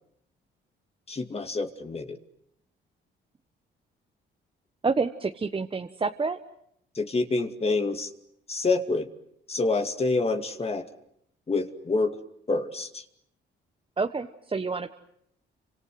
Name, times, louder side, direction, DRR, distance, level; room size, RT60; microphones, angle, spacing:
voice 1, 1.1-2.2 7.0-8.1 8.5-9.1 9.5-10.9 11.5-12.2 12.5-13.0, left 3 dB, 30° left, 7 dB, 2.4 m, -27 dB
voice 2, 4.8-6.4 14.0-14.9, right 4 dB, 25° right, 6 dB, 1.3 m, -28 dB
29.0 x 26.0 x 7.9 m, 0.75 s
cardioid pair, 90°, 20 cm